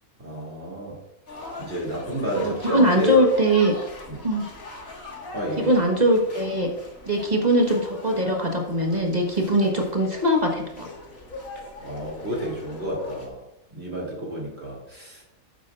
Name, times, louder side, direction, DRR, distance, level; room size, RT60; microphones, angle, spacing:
voice 1, 0.2-1.0 1.6-3.2 4.1-4.2 5.3-5.7 11.8-13.4 13.7-15.2, right 1 dB, 45° right, -3 dB, 2.8 m, -30 dB
sound 1, 1.3-13.3, left 2 dB, 75° left, 2.3 m, -40 dB
voice 2, 2.4-3.7 4.2-4.4 5.6-6.7 7.1-10.9, equal, 30° right, 1 dB, 1.4 m, -21 dB
12.5 x 9.5 x 2.5 m, 0.90 s
omnidirectional pair, 1.5 m